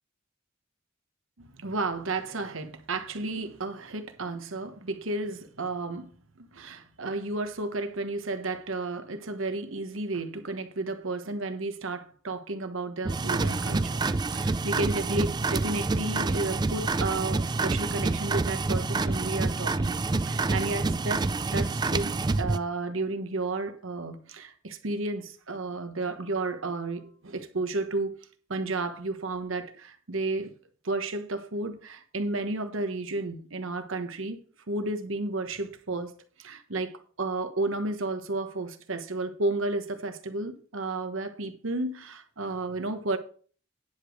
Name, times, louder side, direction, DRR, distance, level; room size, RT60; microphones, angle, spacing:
voice 1, 1.4-6.1 6.4-14.0 14.3-21.3 21.5-28.2 28.5-30.5 30.8-34.4 34.7-36.1 36.4-43.2, right 2 dB, 80° right, 1.2 m, -32 dB
sound 1, 13.0-22.6, right 3 dB, 20° right, 0.4 m, -27 dB
10.0 x 5.1 x 6.3 m
head